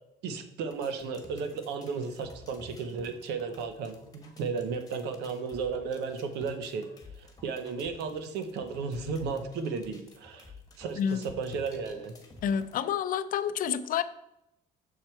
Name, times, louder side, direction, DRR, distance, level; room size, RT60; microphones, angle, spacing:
voice 1, 0.2-6.9 7.2-10.5 10.8-12.1, right 5 dB, 85° right, 8 dB, 0.8 m, -34 dB
sound 1, 0.7-12.8, left 3 dB, 20° left, 1.3 m, -52 dB
voice 2, 12.4-14.0, left 8 dB, 55° left, 13 dB, 0.5 m, -29 dB
6.6 x 4.5 x 4.4 m, 0.85 s
cardioid pair, 110°, 17 cm